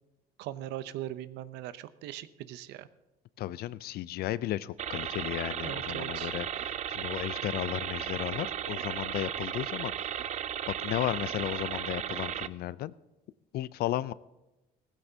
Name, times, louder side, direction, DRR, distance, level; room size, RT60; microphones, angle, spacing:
voice 1, 0.4-2.9 5.6-6.3, right 13 dB, 90° right, 14 dB, 0.6 m, -40 dB
voice 2, 3.4-6.5 6.9-10.2 10.7-12.9 13.5-14.1, left 14 dB, 65° left, 19 dB, 0.4 m, -34 dB
sound 1, 4.8-12.5, right 10 dB, 45° right, 0.4 m, -35 dB
17.0 x 15.0 x 2.7 m, 1.0 s
cardioid pair, 110°, 17 cm